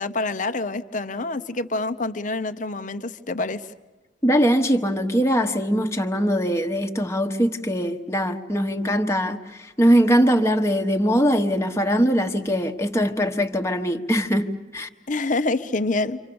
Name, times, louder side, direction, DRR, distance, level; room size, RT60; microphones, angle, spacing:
voice 1, 0.0-3.6 15.1-16.2, left 2 dB, 45° left, 0.9 m, -26 dB
voice 2, 4.2-14.9, equal, 15° left, 1.2 m, -21 dB
29.0 x 26.0 x 7.1 m
head